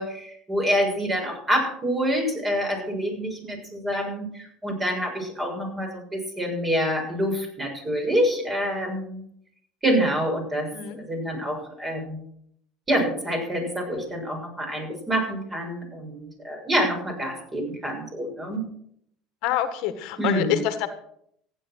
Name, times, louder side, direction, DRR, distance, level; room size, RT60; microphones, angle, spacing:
voice 1, 0.0-9.2 9.8-10.7 11.1-12.2 12.9-18.6 20.2-20.6, equal, 20° right, 2 dB, 7.0 m, -27 dB
voice 2, 19.4-20.9, left 11 dB, 70° left, 9 dB, 1.6 m, -26 dB
15.0 x 9.8 x 6.4 m, 0.69 s
supercardioid pair, 105°, 0 cm